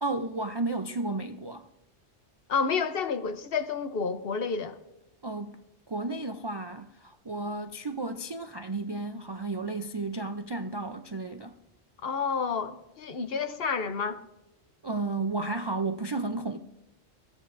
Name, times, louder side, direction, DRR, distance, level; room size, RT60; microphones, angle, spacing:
voice 1, 0.0-1.7 5.2-5.6 5.9-11.6 14.8-16.6, right 3 dB, 40° right, 0.3 m, -33 dB
voice 2, 2.5-4.8 12.0-14.2, left 5 dB, 60° left, 1.0 m, -30 dB
22.0 x 15.5 x 2.6 m
omnidirectional pair, 1.2 m